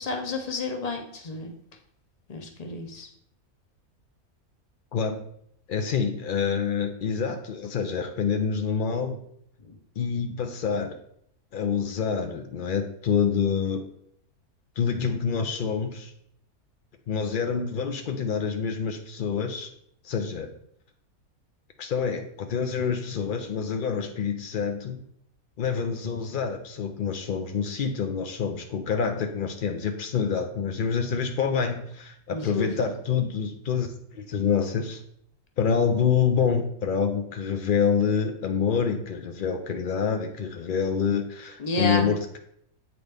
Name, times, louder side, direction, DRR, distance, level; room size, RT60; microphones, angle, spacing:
voice 1, 0.0-1.5 2.3-3.1 9.6-9.8 32.3-32.7 41.6-42.1, left 2 dB, 35° left, 4 dB, 0.6 m, -30 dB
voice 2, 4.9-5.2 5.7-9.2 10.0-11.0 11.5-13.9 14.8-16.1 17.1-19.7 20.0-20.5 21.8-25.0 25.6-33.9 34.1-35.0 35.6-42.4, left 6 dB, 90° left, 5 dB, 0.4 m, -27 dB
8.4 x 4.0 x 3.4 m, 0.69 s
omnidirectional pair, 1.6 m